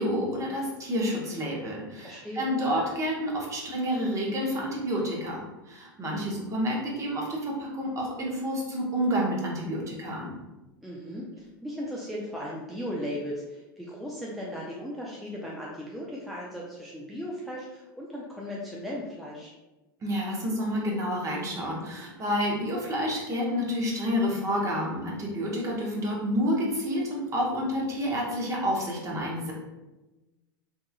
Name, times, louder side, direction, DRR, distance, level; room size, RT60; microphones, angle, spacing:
voice 1, 0.0-10.3 20.0-29.5, equal, 30° right, -3 dB, 0.8 m, -29 dB
voice 2, 1.9-2.4 10.8-19.5, equal, ahead, -5 dB, 0.4 m, -37 dB
2.8 x 2.3 x 2.3 m, 1.1 s
hypercardioid pair, 95°, 11 cm